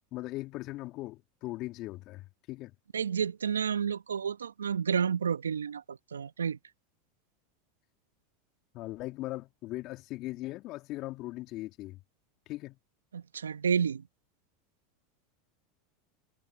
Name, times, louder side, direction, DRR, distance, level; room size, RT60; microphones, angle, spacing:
voice 1, 0.1-2.7 8.7-12.0 12.5-12.8, left 18 dB, 50° left, 3.1 m, -39 dB
voice 2, 2.9-6.6 13.1-14.0, right 7 dB, 85° right, 1.1 m, -30 dB
hypercardioid pair, 85°, 0 cm